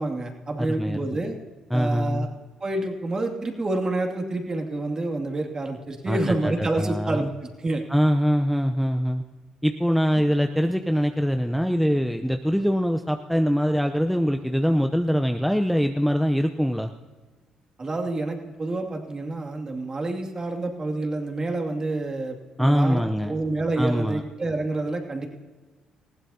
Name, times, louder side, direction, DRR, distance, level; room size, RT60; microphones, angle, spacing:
voice 1, 0.0-1.4 1.7-2.3 2.6-7.8 17.8-25.3, right 2 dB, 35° right, 3 dB, 2.4 m, -28 dB
voice 2, 0.6-1.2 1.7-2.3 6.1-7.3 7.9-9.2 9.6-16.9 22.6-23.3 23.8-24.2, equal, ahead, 6 dB, 0.7 m, -23 dB
20.0 x 15.5 x 2.8 m, 1.4 s
supercardioid pair, 60°, 2 cm